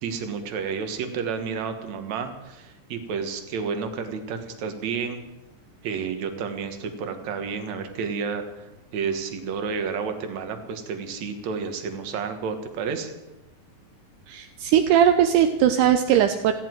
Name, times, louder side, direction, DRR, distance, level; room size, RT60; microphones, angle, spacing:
voice 1, 0.0-5.2 5.8-8.7 8.9-13.1, right 6 dB, 60° right, 6 dB, 2.5 m, -30 dB
voice 2, 14.3-16.5, right 9 dB, 80° right, 7 dB, 2.1 m, -19 dB
29.0 x 10.0 x 4.6 m, 1.0 s
omnidirectional pair, 4.0 m